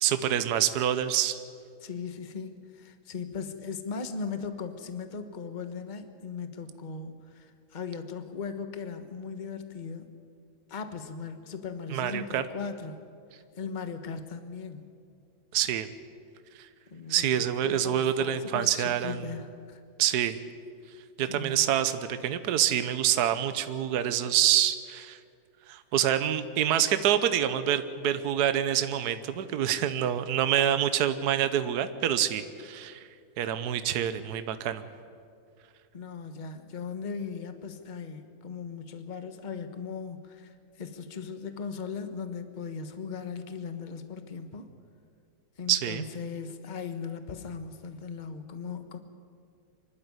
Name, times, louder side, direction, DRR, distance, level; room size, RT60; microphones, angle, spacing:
voice 1, 0.0-1.4 11.9-12.4 15.5-15.9 16.6-16.7 17.1-19.2 20.0-20.4 21.2-25.2 25.7-33.1 33.4-34.8 45.7-46.0, right 10 dB, 55° right, 11 dB, 1.3 m, -26 dB
voice 2, 1.8-10.1 10.7-13.0 13.6-14.9 16.9-19.8 21.2-21.7 35.9-44.7 45.6-49.0, left 5 dB, 30° left, 8 dB, 1.1 m, -38 dB
25.0 x 12.5 x 9.7 m, 2.4 s
omnidirectional pair, 2.2 m